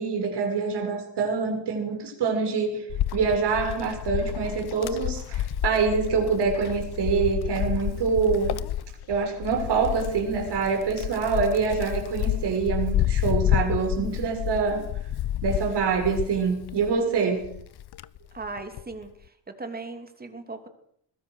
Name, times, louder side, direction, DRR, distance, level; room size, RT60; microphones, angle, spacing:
voice 1, 0.0-2.8 3.1-8.6 9.1-14.8 15.4-17.5, right 5 dB, 70° right, 4 dB, 6.4 m, -25 dB
Wind, 2.9-17.0 17.4-18.9, left 12 dB, 65° left, 0.9 m, -30 dB
voice 2, 18.3-20.7, right 3 dB, 20° right, 7 dB, 3.1 m, -38 dB
21.5 x 21.5 x 6.6 m, 0.71 s
cardioid pair, 145°, 42 cm